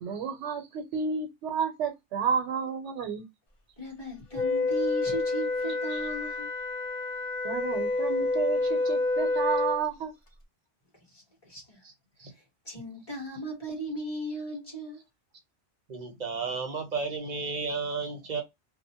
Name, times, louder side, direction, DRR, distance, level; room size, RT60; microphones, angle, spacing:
voice 1, 0.0-3.3 5.9-6.0 7.4-10.1, right 6 dB, 80° right, 0.9 m, -31 dB
voice 2, 3.8-6.5 11.1-11.8 12.3-15.0, right 1 dB, 20° left, 1.3 m, -37 dB
Wind instrument woodwind instrument, 4.3-9.8, left 3 dB, 45° left, 0.4 m, -28 dB
voice 3, 15.9-18.4, right 4 dB, 45° right, 0.7 m, -33 dB
2.6 x 2.1 x 2.7 m
omnidirectional pair, 1.2 m